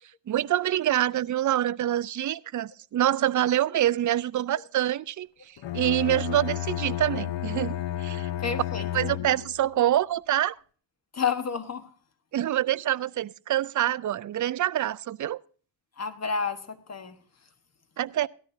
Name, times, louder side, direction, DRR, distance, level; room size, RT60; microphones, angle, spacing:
voice 1, 0.3-5.3 5.7-8.3 8.9-10.6 12.3-15.4 18.0-18.3, right 12 dB, 40° right, 0.5 m, -26 dB
Bowed string instrument, 5.6-9.6, left 13 dB, 65° left, 0.9 m, -32 dB
voice 2, 8.4-8.9 9.3-9.4 11.1-11.9 16.0-17.2, left 6 dB, 30° left, 1.4 m, -30 dB
17.5 x 13.5 x 2.7 m
cardioid pair, 95°, 48 cm